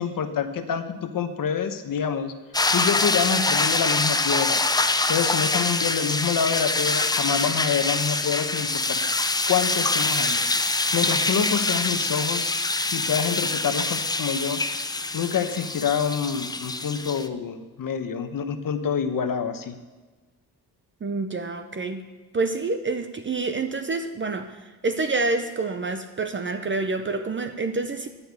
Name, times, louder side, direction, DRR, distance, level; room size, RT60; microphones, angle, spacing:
voice 1, 0.0-2.3 2.7-4.6 5.1-9.0 9.5-10.4 10.9-12.5 12.9-14.6 15.1-19.8, left 7 dB, 55° left, 8 dB, 1.0 m, -27 dB
sound 1, 2.5-17.3, left 3 dB, 10° left, 0.4 m, -25 dB
voice 2, 21.0-22.0 22.3-28.1, right 3 dB, 30° right, 8 dB, 0.6 m, -27 dB
11.5 x 5.6 x 8.2 m, 1.3 s
cardioid pair, 115°, 39 cm